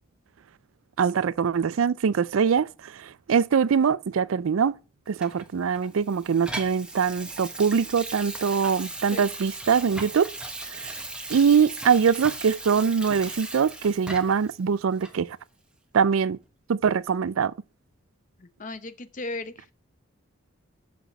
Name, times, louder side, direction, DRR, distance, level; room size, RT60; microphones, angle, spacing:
voice 1, 1.0-4.8 5.1-10.3 10.7-11.0 11.3-15.4 15.9-16.4 16.7-17.5, right 6 dB, 85° right, 0.4 m, -23 dB
Water tap faucet / Sink (filling or washing), 5.2-14.5 15.0-15.1, right 2 dB, 5° right, 1.0 m, -38 dB
voice 2, 18.4-19.7, left 2 dB, 40° left, 0.8 m, -36 dB
7.0 x 5.9 x 6.6 m
head